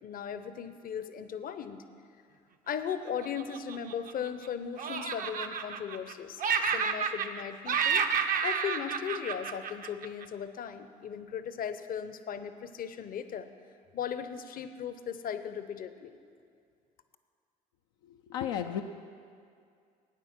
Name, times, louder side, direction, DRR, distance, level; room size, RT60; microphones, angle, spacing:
voice 1, 0.0-1.8 2.7-8.0 8.4-13.5 13.9-16.2, left 8 dB, 50° left, 11 dB, 0.8 m, -37 dB
Laughter, 3.2-4.5 4.8-6.1 6.4-7.4 7.7-10.3, right 6 dB, 50° right, 0.7 m, -30 dB
voice 2, 18.0-18.8, left 9 dB, 80° left, 3 dB, 0.5 m, -34 dB
13.0 x 9.1 x 5.9 m, 2.3 s
hypercardioid pair, 55°, 18 cm